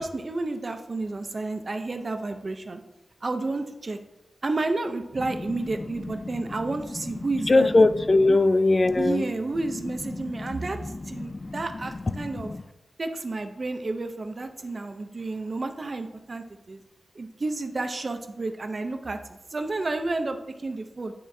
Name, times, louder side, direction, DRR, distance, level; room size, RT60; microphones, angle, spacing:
voice 1, 0.0-2.8 3.2-4.0 4.4-7.7 8.3-8.4 9.0-12.5 13.0-16.8 17.1-21.1, right 2 dB, 40° right, 6 dB, 0.5 m, -31 dB
voice 2, 5.3-9.3 9.6-12.6, left 2 dB, 35° left, 13 dB, 0.3 m, -24 dB
11.0 x 3.8 x 2.6 m, 1.0 s
wide cardioid pair, 130°, 0 cm